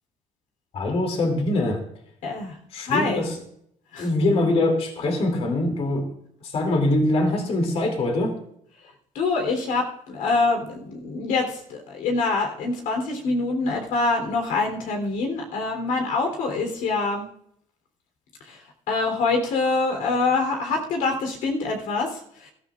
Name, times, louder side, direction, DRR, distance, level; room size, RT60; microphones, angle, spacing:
voice 1, 0.7-1.8 2.7-3.3 4.0-6.1 6.5-8.4, left 2 dB, 50° left, 3 dB, 2.7 m, -23 dB
voice 2, 2.2-2.5 2.8-3.2 3.9-4.1 9.1-17.2 18.4-18.6 18.9-22.5, left 3 dB, 90° left, 3 dB, 3.4 m, -25 dB
22.0 x 13.5 x 2.5 m, 0.70 s
cardioid pair, 130°, 13 cm